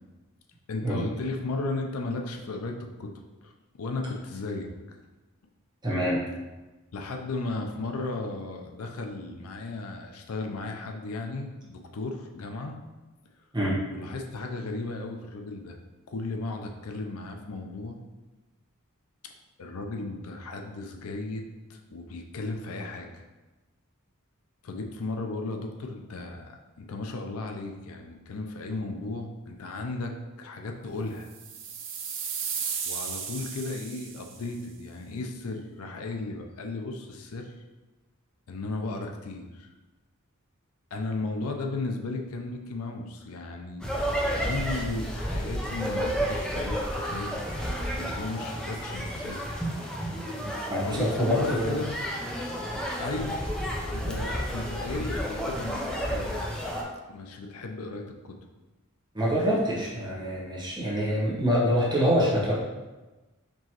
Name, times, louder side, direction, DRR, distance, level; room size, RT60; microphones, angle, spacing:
voice 1, 0.7-3.1 3.4-3.5 3.8-5.0 6.9-12.8 13.9-15.8 16.1-18.0 19.6-23.2 24.6-31.3 32.8-37.5 38.5-39.7 40.9-43.9 44.3-47.4 47.8-49.5 50.9-52.0 53.0-53.4 53.9-56.4 57.1-58.4, left 2 dB, 75° left, 3 dB, 0.5 m, -35 dB
voice 2, 5.8-6.2 13.5-13.8 50.7-51.7 54.0-54.1 59.1-62.5, equal, 20° right, -6 dB, 1.1 m, -25 dB
sound 1, 31.3-34.5, right 6 dB, 60° right, 0.5 m, -35 dB
sound 2, 43.8-56.8, equal, 5° left, 0.5 m, -31 dB
4.5 x 3.0 x 2.9 m, 1.1 s
head